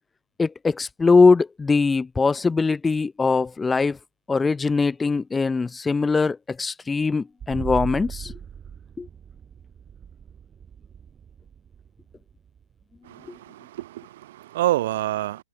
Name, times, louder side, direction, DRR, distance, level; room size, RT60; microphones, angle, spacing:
voice 1, 0.4-4.0 4.3-8.3 9.0-9.1, left 4 dB, 10° left, 0.8 m, -21 dB
sound 1, 7.4-13.0, right 8 dB, 20° right, 2.4 m, -38 dB
voice 2, 13.0-15.4, right 15 dB, 60° right, 3.7 m, -27 dB
hypercardioid pair, 120°, 0 cm